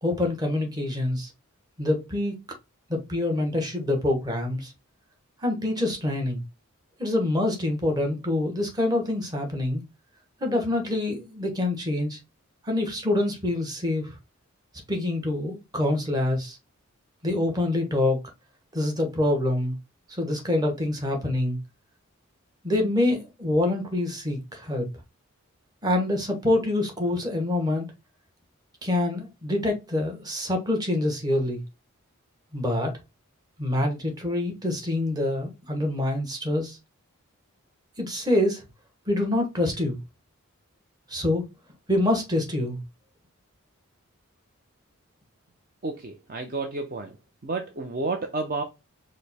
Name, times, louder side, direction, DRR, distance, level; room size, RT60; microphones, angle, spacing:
voice 1, 0.0-1.3 1.8-2.4 2.9-4.7 5.4-6.4 7.0-9.8 10.4-12.2 12.6-14.1 14.9-16.6 17.2-18.2 18.7-19.7 20.1-21.6 22.6-24.9 25.8-27.9 28.8-31.6 32.5-32.9 33.6-36.8 38.0-38.6 39.1-40.0 41.1-41.4 41.9-42.8, left 1 dB, 20° right, 1.0 m, -26 dB
voice 2, 45.8-47.1 47.4-48.6, right 3 dB, 40° right, 0.5 m, -31 dB
5.0 x 2.1 x 4.1 m
head